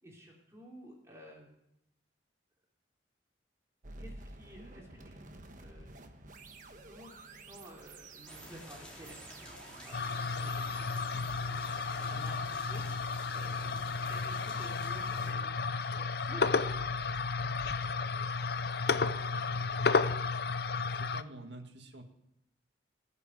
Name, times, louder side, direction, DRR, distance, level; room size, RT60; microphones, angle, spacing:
voice 1, 0.0-1.5 4.0-5.2 5.6-6.0 6.7-11.0 11.4-13.0 13.3-13.8 14.1-16.9, equal, 15° right, -2 dB, 3.2 m, -52 dB
sound 1, 3.8-14.9, right 3 dB, 45° right, 1.3 m, -52 dB
sound 2, 8.3-15.3, equal, 5° left, 3.6 m, -51 dB
sound 3, 9.9-21.2, left 4 dB, 55° left, 0.6 m, -32 dB
voice 2, 19.0-20.1 20.9-22.0, right 1 dB, 75° right, 5 dB, 1.9 m, -49 dB
19.5 x 6.9 x 9.1 m, 0.80 s
head